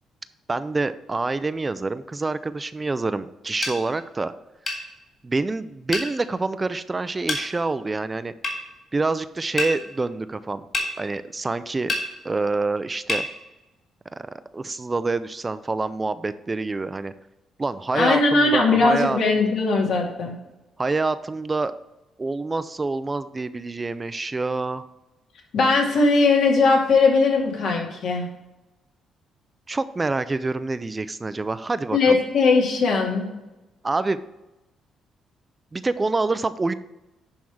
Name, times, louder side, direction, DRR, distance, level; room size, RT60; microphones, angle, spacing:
voice 1, 0.5-4.3 5.2-8.3 8.9-10.7 11.0-11.9 12.2-13.3 14.5-17.1 17.6-19.5 20.8-21.7 22.2-24.8 29.7-32.2 33.8-34.2 35.7-36.7, right 3 dB, 25° right, 13 dB, 0.4 m, -26 dB
sound 1, 3.6-3.8 4.7-4.8 5.9-6.1 7.3-7.4 8.4-8.6 9.6-9.7 10.7-10.9 11.9-12.1 13.1-13.3, left 2 dB, 40° left, 3.0 m, -25 dB
voice 2, 17.9-20.3 25.5-28.2 31.9-33.2, left 3 dB, 70° left, -1 dB, 2.5 m, -19 dB
10.5 x 3.6 x 6.2 m, 1.0 s
cardioid pair, 90°, 0 cm